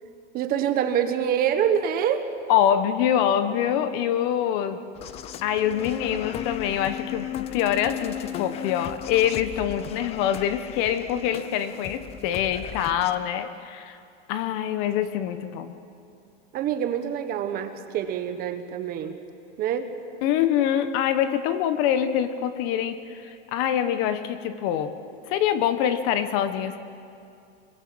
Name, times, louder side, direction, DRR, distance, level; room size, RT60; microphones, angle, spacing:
voice 1, 0.3-2.3 16.5-19.1 19.6-19.9, right 9 dB, 25° right, 8 dB, 1.3 m, -25 dB
voice 2, 2.5-4.8 5.4-14.0 14.3-15.8 20.2-25.0 25.3-26.8, left 10 dB, 40° left, 11 dB, 1.2 m, -25 dB
sound 1, 4.9-13.2, left 10 dB, 20° left, 0.6 m, -36 dB
26.0 x 21.5 x 7.8 m, 2.5 s
supercardioid pair, 160°, 33 cm